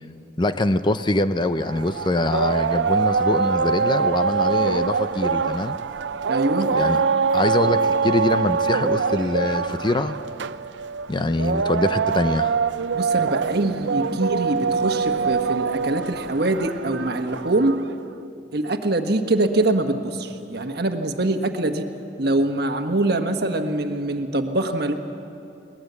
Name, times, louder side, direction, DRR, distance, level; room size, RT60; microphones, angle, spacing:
voice 1, 0.4-5.8 6.7-7.0 7.3-10.2 11.1-12.5, left 2 dB, 25° left, 11 dB, 0.5 m, -23 dB
sound 1, 1.6-17.9, right 5 dB, 75° right, 0.5 m, -24 dB
voice 2, 6.3-6.7 12.9-17.8 18.5-21.8 22.2-24.9, right 2 dB, 60° right, 6 dB, 1.4 m, -23 dB
21.5 x 19.5 x 8.1 m, 2.7 s
head